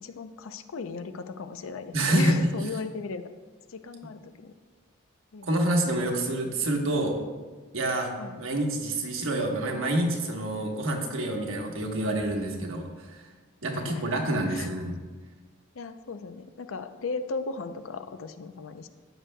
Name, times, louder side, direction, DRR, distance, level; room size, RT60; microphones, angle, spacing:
voice 1, 0.0-3.3 3.7-4.5 5.3-5.5 8.2-8.4 13.7-14.2 14.5-14.7 15.7-18.9, left 4 dB, 65° left, 10 dB, 0.5 m, -36 dB
voice 2, 1.9-2.4 5.4-7.2 7.7-8.1 8.4-13.2 13.6-15.0, right 1 dB, 65° right, 1 dB, 1.2 m, -27 dB
14.0 x 6.3 x 2.2 m, 1.4 s
head